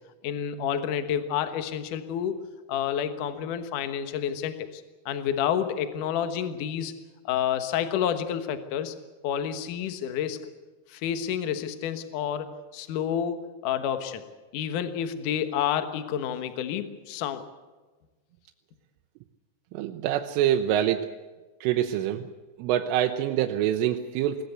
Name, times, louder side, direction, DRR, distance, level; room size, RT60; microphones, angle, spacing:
voice 1, 0.2-2.4 2.7-6.9 7.3-8.9 9.2-10.4 10.9-14.2 14.5-17.4, left 9 dB, 70° left, 9 dB, 2.0 m, -29 dB
voice 2, 19.7-21.1 21.6-22.3 22.6-24.4, right 11 dB, 85° right, 5 dB, 3.3 m, -25 dB
21.0 x 19.0 x 8.1 m, 1.3 s
omnidirectional pair, 5.7 m